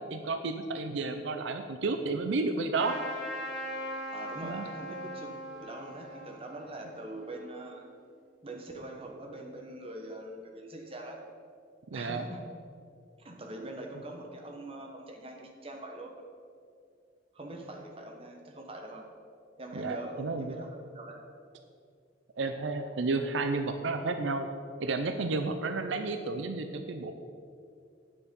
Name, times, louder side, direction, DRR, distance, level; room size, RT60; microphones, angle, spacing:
voice 1, 0.0-3.0 4.4-4.7 11.9-12.2 19.8-20.5 22.4-24.5 24.8-27.1, right 3 dB, 75° right, 7 dB, 0.5 m, -32 dB
Trumpet, 2.7-7.8, equal, 5° right, 1.8 m, -41 dB
voice 2, 4.1-5.3 5.6-7.8 8.4-11.2 11.9-12.4 13.2-16.1 17.3-19.0 19.6-21.1, right 1 dB, 30° right, 1 dB, 1.2 m, -43 dB
9.2 x 6.8 x 5.3 m, 2.3 s
head